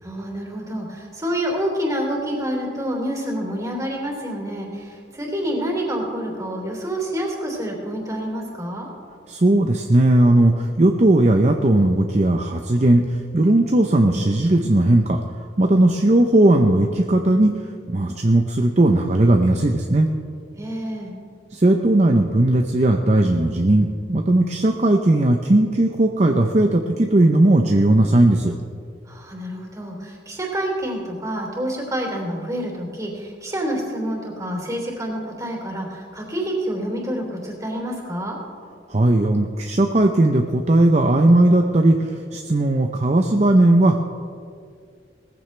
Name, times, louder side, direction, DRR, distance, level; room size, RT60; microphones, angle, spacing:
voice 1, 0.0-8.9 20.6-21.1 29.1-38.4, equal, 20° right, 0 dB, 3.2 m, -28 dB
voice 2, 9.3-15.2 15.6-17.5 17.9-20.1 21.5-28.5 38.9-44.0, right 1 dB, 40° right, 4 dB, 0.7 m, -17 dB
19.0 x 15.0 x 3.3 m, 2.2 s
head